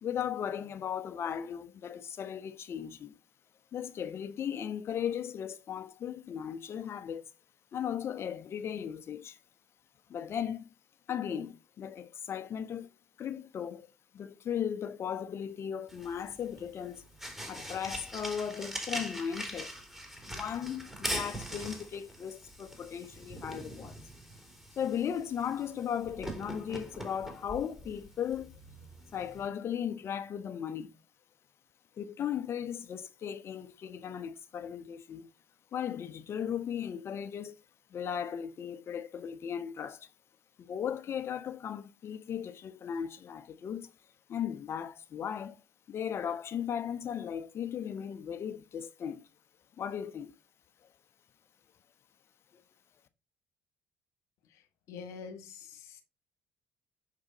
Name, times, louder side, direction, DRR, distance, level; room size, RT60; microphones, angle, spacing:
voice 1, 0.0-3.1 3.7-7.2 7.7-9.3 10.1-10.7 11.1-12.9 13.2-13.9 14.1-17.0 17.5-19.7 20.3-23.9 24.8-28.5 29.1-30.9 32.0-35.2 35.7-37.5 37.9-40.0 40.6-43.9 44.3-45.6 45.9-49.2 49.8-50.3, left 8 dB, 50° left, 1.1 m, -36 dB
sound 1, 15.9-29.5, equal, 5° right, 3.5 m, -42 dB
voice 2, 54.9-56.0, left 5 dB, 65° left, 1.7 m, -45 dB
7.2 x 5.1 x 4.1 m
hypercardioid pair, 50°, 5 cm